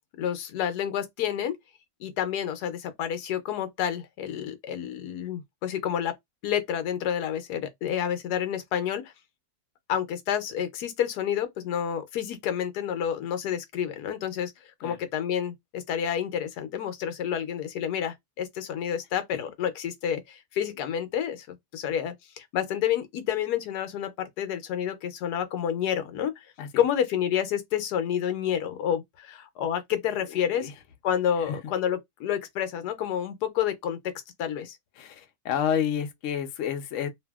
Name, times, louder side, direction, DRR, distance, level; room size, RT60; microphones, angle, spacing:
voice 1, 0.2-1.5 2.0-6.1 6.4-9.1 9.9-14.5 14.8-30.7 31.0-34.1 34.4-34.8, left 9 dB, 85° left, 1.2 m, -29 dB
voice 2, 30.3-30.7 31.5-31.6 35.0-37.1, left 8 dB, 65° left, 0.8 m, -30 dB
2.7 x 2.6 x 2.3 m
omnidirectional pair, 1.7 m